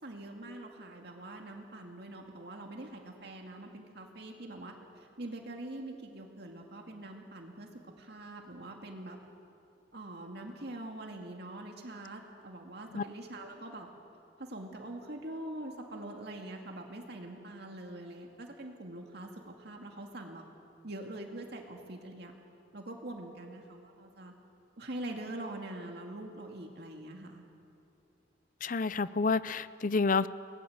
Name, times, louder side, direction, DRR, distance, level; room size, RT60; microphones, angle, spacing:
voice 1, 0.0-7.7 8.0-9.2 9.9-13.9 14.4-20.4 20.8-22.3 22.7-24.3 24.8-27.4, right 1 dB, 60° right, 1 dB, 2.3 m, -44 dB
voice 2, 28.6-30.3, left 4 dB, 45° left, 15 dB, 0.6 m, -29 dB
30.0 x 20.5 x 8.0 m, 2.7 s
head